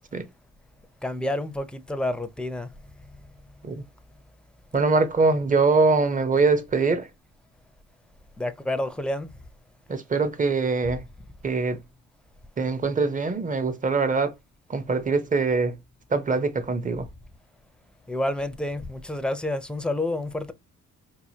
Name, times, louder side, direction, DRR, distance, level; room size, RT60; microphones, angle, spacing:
voice 1, 1.0-2.7 8.4-9.3 18.1-20.5, left 1 dB, 5° left, 0.6 m, -29 dB
voice 2, 4.7-7.1 9.9-11.0 11.4-11.8 12.6-14.3 14.7-15.8 16.1-17.1, right 4 dB, 25° right, 0.9 m, -23 dB
4.7 x 2.2 x 2.8 m
cardioid pair, 90°, 30 cm